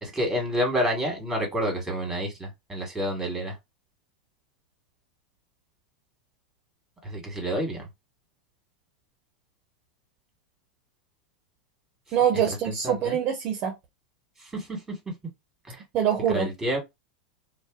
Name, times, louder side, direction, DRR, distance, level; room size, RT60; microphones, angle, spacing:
voice 1, 0.0-3.5 7.0-7.8 12.7-13.2 14.5-14.8 15.7-15.8 16.3-16.8, equal, 5° right, 1.4 m, -29 dB
voice 2, 12.1-13.7 15.9-16.5, right 9 dB, 40° right, 0.6 m, -24 dB
2.6 x 2.1 x 2.3 m
hypercardioid pair, 105°, 5 cm